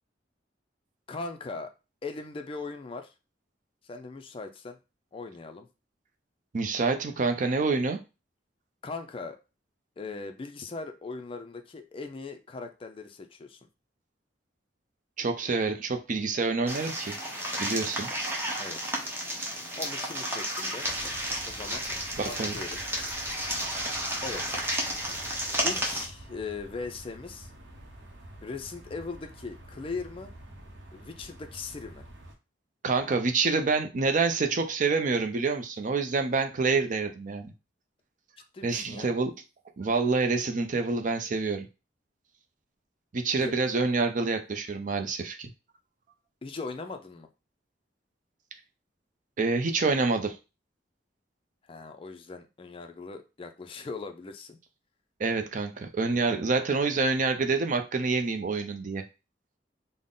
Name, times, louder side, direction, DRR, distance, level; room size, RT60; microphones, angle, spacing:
voice 1, 1.1-1.7 2.0-3.1 3.8-4.8 5.1-5.7 8.8-9.4 10.0-13.6 18.6-19.0 19.8-20.9 21.5-21.9 22.2-23.0 24.2-24.6 25.6-27.5 28.4-30.3 30.9-32.0 38.5-39.1 43.4-43.6 46.4-47.3 51.7-54.6, left 4 dB, 30° left, 6 dB, 0.4 m, -39 dB
voice 2, 6.5-8.0 15.2-17.2 17.6-18.1 22.2-22.6 32.8-37.5 38.6-39.3 39.8-41.7 43.1-45.5 49.4-50.4 55.2-59.0, right 4 dB, 45° right, 6 dB, 0.5 m, -27 dB
sound 1, 16.7-26.1, right 1 dB, 15° right, 0.8 m, -32 dB
sound 2, 20.8-32.4, right 1 dB, 85° right, 0.7 m, -48 dB
3.7 x 2.1 x 3.7 m, 0.29 s
head